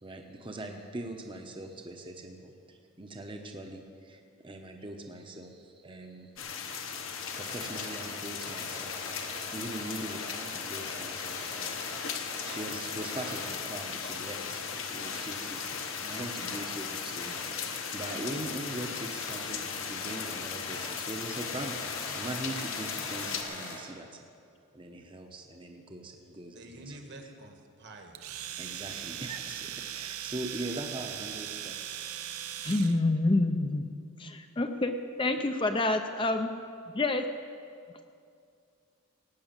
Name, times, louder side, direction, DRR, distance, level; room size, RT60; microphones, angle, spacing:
voice 1, 0.0-6.3 7.0-11.7 12.1-24.1 24.7-27.3 28.6-31.7, right 1 dB, 20° right, 3 dB, 0.8 m, -41 dB
sound 1, 6.4-23.4, left 6 dB, 60° left, 1.0 m, -37 dB
sound 2, 7.3-8.0 8.4-9.4 9.7-12.0 12.3-12.6 13.0-13.5 14.4-14.5 15.0-15.2 15.7-16.6 17.2-17.4 18.0-18.2 18.8-18.9 19.2-19.4 20.0-20.2 20.7-20.9 21.3-23.8, left 3 dB, 75° left, 3.6 m, -42 dB
voice 2, 26.5-28.3, right 2 dB, 50° right, 4 dB, 1.4 m, -48 dB
Domestic sounds home sounds, 28.2-33.0, right 11 dB, 75° right, 0.6 m, -39 dB
voice 3, 32.6-33.9 34.2-36.5 37.0-37.2, left 2 dB, 20° left, 6 dB, 0.5 m, -27 dB
17.0 x 6.2 x 8.9 m, 2.4 s
head